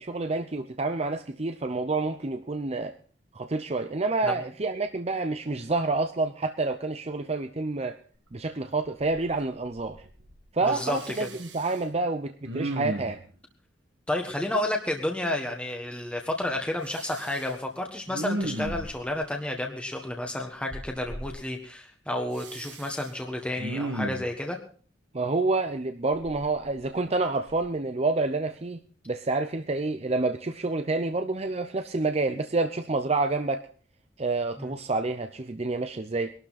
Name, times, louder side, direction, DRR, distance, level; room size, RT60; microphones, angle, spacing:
voice 1, 0.0-2.9 3.3-8.0 8.3-10.0 10.5-13.2 25.1-28.8 29.1-33.6 34.2-36.3, right 3 dB, 35° right, 7 dB, 0.7 m, -28 dB
Respiratory sounds, 8.3-8.4 8.8-9.4 9.6-10.4 10.8-11.8 12.4-13.3 16.9-17.5 18.1-19.1 20.7-21.3 22.3-23.0 23.6-24.3 26.1-27.1 27.5-27.7, right 1 dB, 75° right, 1.9 m, -35 dB
voice 2, 10.7-11.3 14.1-24.6 34.6-34.7, left 1 dB, 5° left, 2 dB, 1.4 m, -31 dB
21.5 x 12.0 x 4.2 m, 0.43 s
head